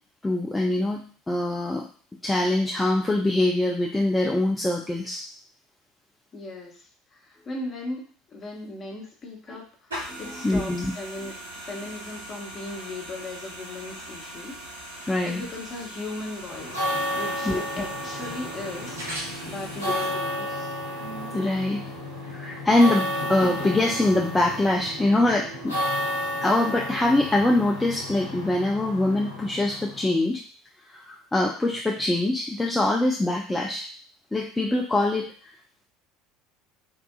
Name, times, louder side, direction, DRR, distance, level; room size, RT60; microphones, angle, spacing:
voice 1, 0.2-1.9 2.2-5.2 9.5-9.6 10.1-10.9 15.0-15.4 17.5-17.6 21.3-21.8 22.3-25.7 26.4-30.4 30.9-33.9 34.3-35.2, left 2 dB, 10° left, -1 dB, 0.4 m, -23 dB
voice 2, 6.3-11.3 11.6-14.6 15.2-19.0 19.4-20.7, left 2 dB, 30° left, -2 dB, 1.0 m, -38 dB
sound 1, 9.9-20.1, right 1 dB, 75° right, 0.8 m, -39 dB
sound 2, 16.5-30.1, equal, 80° left, 0.7 m, -32 dB
3.7 x 2.3 x 2.3 m, 0.43 s
figure-of-eight pair, 65°, 0 cm